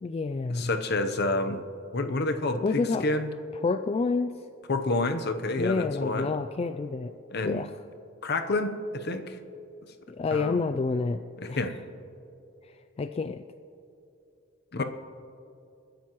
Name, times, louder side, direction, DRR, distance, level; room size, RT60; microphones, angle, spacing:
voice 1, 0.0-0.7 2.6-3.1 3.6-4.3 5.6-7.1 7.4-7.7 10.1-11.2 11.5-11.8 12.6-13.4 14.8-14.9, left 4 dB, 30° left, 9 dB, 0.3 m, -29 dB
voice 2, 0.5-1.6 1.9-3.3 4.7-6.3 7.3-7.6 8.2-9.4 10.3-10.6 11.4-11.7 14.7-14.8, left 2 dB, 55° left, 8 dB, 0.8 m, -28 dB
28.5 x 10.5 x 3.1 m, 2.7 s
head